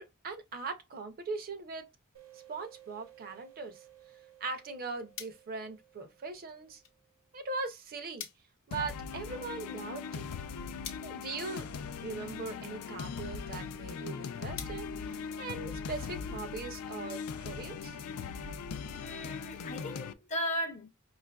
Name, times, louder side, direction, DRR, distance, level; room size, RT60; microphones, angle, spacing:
voice 1, 0.0-1.9 2.3-3.8 4.4-6.8 7.3-8.2 8.7-10.3 11.0-11.7 12.0-18.0, right 4 dB, 40° right, 0.5 m, -40 dB
sound 1, 2.1-7.5, right 13 dB, 70° right, 1.0 m, -58 dB
sound 2, 5.1-15.9, left 8 dB, 60° left, 0.8 m, -52 dB
sound 3, 8.7-20.1, left 5 dB, 80° left, 0.4 m, -40 dB
voice 2, 19.0-20.9, equal, 30° left, 0.5 m, -36 dB
5.0 x 2.4 x 2.2 m
head